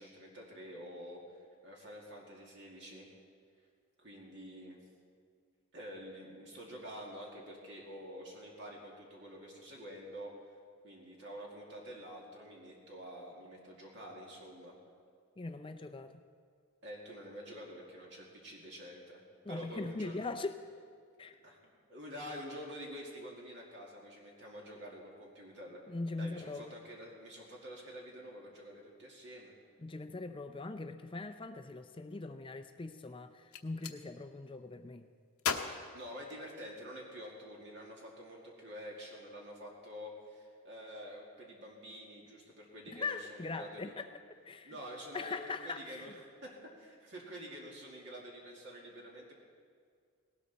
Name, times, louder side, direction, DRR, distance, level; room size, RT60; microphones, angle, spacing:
voice 1, 0.0-3.1 4.0-4.8 5.7-10.3 10.8-14.7 16.8-19.2 19.5-20.3 21.4-25.8 26.2-29.5 35.9-43.9 44.6-49.3, equal, 55° right, -2 dB, 2.3 m, -48 dB
voice 2, 15.4-16.2 19.4-20.5 21.2-21.4 25.9-26.7 29.8-35.1 42.9-44.1 44.5-44.8 45.1-46.1, left 3 dB, 25° left, 8 dB, 0.5 m, -41 dB
Gunshot gunfire, 33.3-34.0 35.4-36.9, left 6 dB, 90° left, 1.0 m, -38 dB
18.5 x 18.0 x 4.1 m, 2.1 s
head